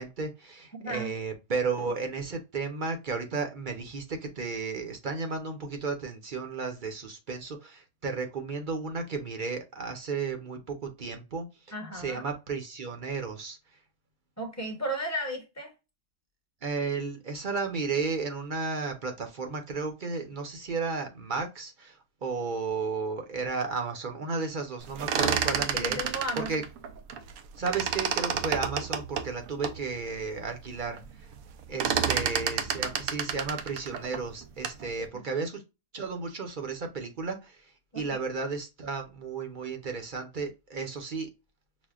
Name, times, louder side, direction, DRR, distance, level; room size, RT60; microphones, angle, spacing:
voice 1, 0.0-11.5 11.9-13.6 16.6-21.9 22.2-26.0 26.3-26.6 27.6-31.0 31.7-35.6 35.9-37.6 37.9-41.3, right 4 dB, 45° right, 0.8 m, -33 dB
voice 2, 0.7-1.1 11.7-12.2 14.4-15.7 25.2-25.3 25.7-26.5 32.0-32.9 35.1-35.3 37.9-38.2, equal, 15° left, 0.9 m, -35 dB
sound 1, 24.8-27.4 27.7-29.8 30.3-30.4 30.7-31.1 31.3-34.9, right 8 dB, 90° right, 1.0 m, -30 dB
6.1 x 2.1 x 2.3 m
omnidirectional pair, 1.4 m